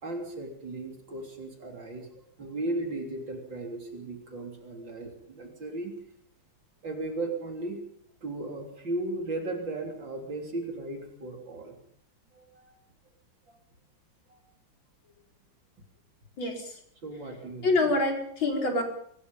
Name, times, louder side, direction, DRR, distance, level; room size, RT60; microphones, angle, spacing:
voice 1, 0.0-2.1 2.4-5.9 6.8-7.8 8.2-11.8 12.3-12.7 13.5-13.6 14.3-14.4 17.0-17.9, right 2 dB, 65° right, 2 dB, 4.1 m, -36 dB
voice 2, 16.4-16.7 17.6-18.8, left 2 dB, 70° left, 2 dB, 5.3 m, -26 dB
24.0 x 21.5 x 5.4 m, 0.66 s
omnidirectional pair, 2.2 m